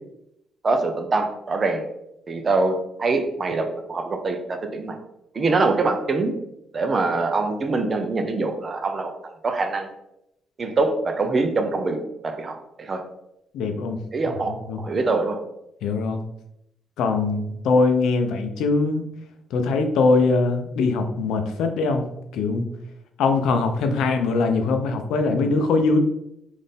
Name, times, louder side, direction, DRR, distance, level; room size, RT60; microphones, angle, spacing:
voice 1, 0.6-1.8 2.3-5.0 5.3-6.3 6.7-9.1 9.4-9.9 10.6-12.0 12.2-13.0 14.1-14.5 14.8-15.4, right 3 dB, 40° right, 6 dB, 0.6 m, -24 dB
voice 2, 13.5-14.8 15.8-16.2 17.0-19.0 19.5-22.7 23.2-26.0, left 3 dB, 85° left, 6 dB, 0.5 m, -22 dB
4.0 x 2.6 x 3.4 m, 0.81 s
cardioid pair, 90°, 0 cm